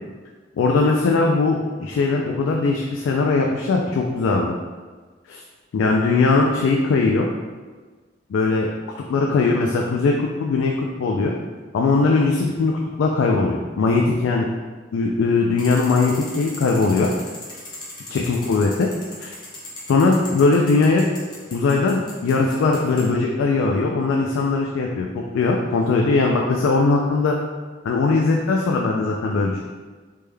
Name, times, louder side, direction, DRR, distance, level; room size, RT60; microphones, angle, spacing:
voice 1, 0.6-4.6 5.3-5.4 5.7-7.3 8.3-8.7 9.1-11.3 11.7-14.5 14.9-17.1 18.1-18.9 19.2-19.3 19.9-21.1 21.5-25.1 25.3-27.4 27.8-29.6, left 3 dB, 85° left, 0 dB, 0.3 m, -20 dB
sound 1, 15.6-23.1, left 1 dB, 25° left, 0.6 m, -39 dB
3.4 x 2.2 x 3.2 m, 1.4 s
head